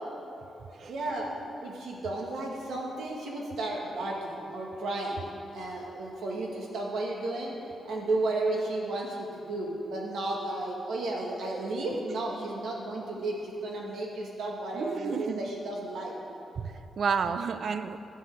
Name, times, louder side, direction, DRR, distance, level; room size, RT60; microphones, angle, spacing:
voice 1, 0.9-5.2 5.5-7.5 7.8-16.1, right 2 dB, 80° right, -1 dB, 1.8 m, -33 dB
voice 2, 14.7-15.5 16.6-18.0, right 6 dB, 50° right, 11 dB, 0.4 m, -31 dB
11.0 x 5.6 x 7.9 m, 2.9 s
wide cardioid pair, 165°, 0 cm